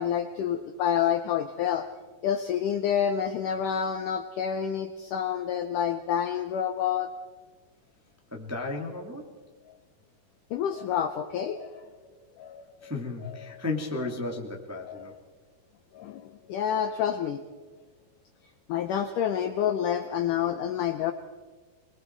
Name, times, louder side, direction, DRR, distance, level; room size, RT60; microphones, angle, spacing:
voice 1, 0.0-1.9 2.2-7.1 10.5-11.9 12.4-12.9 13.2-13.6 14.9-15.1 15.9-17.4 18.7-21.1, left 9 dB, 75° left, 8 dB, 2.0 m, -28 dB
voice 2, 8.3-9.3 12.8-15.1, left 2 dB, 5° right, 0 dB, 1.4 m, -34 dB
26.5 x 21.5 x 4.6 m, 1.3 s
omnidirectional pair, 4.6 m